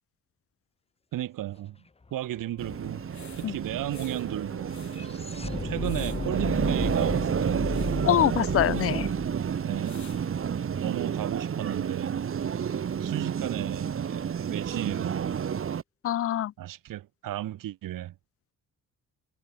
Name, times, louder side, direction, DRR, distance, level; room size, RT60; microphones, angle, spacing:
voice 1, 1.1-1.8 2.1-3.0 3.4-5.2 5.6-7.9 9.6-10.3 10.8-12.2 13.0-15.4 16.6-18.1, right 13 dB, 90° right, 1.5 m, -34 dB
sound 1, 2.0-2.1 2.4-10.6, left 4 dB, 20° left, 1.4 m, -36 dB
sound 2, 2.6-10.9, left 9 dB, 60° left, 3.7 m, -50 dB
sound 3, 2.6-15.8, right 8 dB, 40° right, 1.6 m, -30 dB
voice 2, 8.1-9.1 16.0-16.5, left 12 dB, 45° left, 0.5 m, -24 dB
cardioid pair, 140°, 32 cm